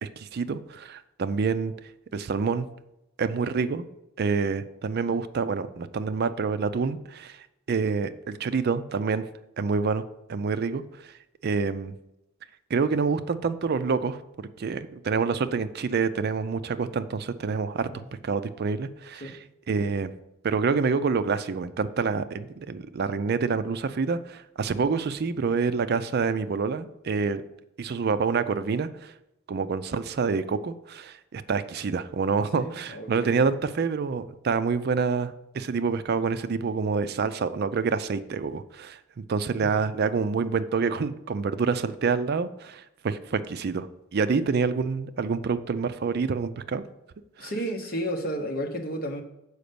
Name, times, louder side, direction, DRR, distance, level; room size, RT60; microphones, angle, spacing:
voice 1, 0.0-1.7 2.1-2.7 3.2-3.9 4.2-7.4 7.7-9.2 9.6-10.0 10.3-11.1 11.4-11.9 12.7-17.9 18.2-19.3 19.7-20.1 20.4-27.4 27.8-29.1 29.5-43.9 44.1-46.8 47.4-47.5, right 5 dB, 50° right, 0.4 m, -27 dB
voice 2, 32.5-33.4 39.6-39.7 47.4-49.2, equal, 45° left, 1.1 m, -32 dB
6.5 x 5.0 x 6.8 m
head